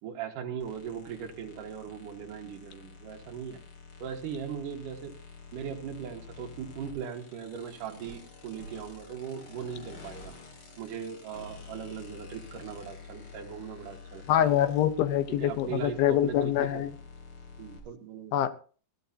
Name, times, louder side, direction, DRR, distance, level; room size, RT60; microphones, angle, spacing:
voice 1, 0.0-3.6 4.0-5.1 5.5-10.3 10.8-14.5 15.3-16.8 17.6-18.4, right 7 dB, 65° right, 4 dB, 2.9 m, -39 dB
sound 1, 0.6-17.8, left 4 dB, 40° left, 3.1 m, -48 dB
voice 2, 14.3-16.9 18.3-18.5, left 11 dB, 85° left, 13 dB, 2.6 m, -25 dB
19.0 x 14.0 x 2.8 m, 0.41 s
omnidirectional pair, 4.2 m